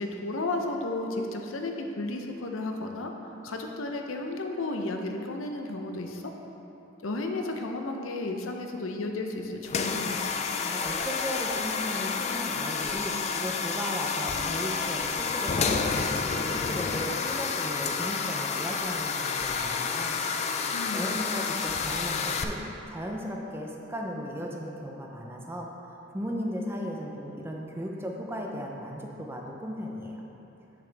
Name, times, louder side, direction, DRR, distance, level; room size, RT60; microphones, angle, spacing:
voice 1, 0.0-3.1 3.4-6.3 7.0-10.3 20.7-21.2, left 2 dB, 90° left, 3 dB, 0.7 m, -33 dB
sound 1, 9.6-22.4, left 5 dB, 35° left, 0.3 m, -30 dB
voice 2, 10.6-16.0 16.4-20.2 20.9-22.6 22.9-30.3, equal, 10° right, 0 dB, 0.6 m, -36 dB
8.0 x 6.9 x 3.4 m, 3.0 s
head